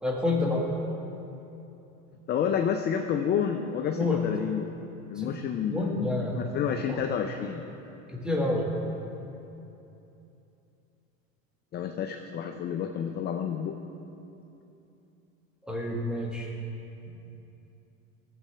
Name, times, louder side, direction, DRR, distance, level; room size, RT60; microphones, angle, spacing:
voice 1, 0.0-0.6 3.9-4.2 5.2-5.3 5.7-6.3 6.9-7.0 8.2-8.6 15.7-16.5, left 2 dB, ahead, -2 dB, 1.6 m, -28 dB
voice 2, 2.3-4.8 5.1-7.6 11.7-13.8, left 8 dB, 25° left, 5 dB, 0.4 m, -30 dB
15.0 x 7.4 x 3.3 m, 2.9 s
supercardioid pair, 105°, 39 cm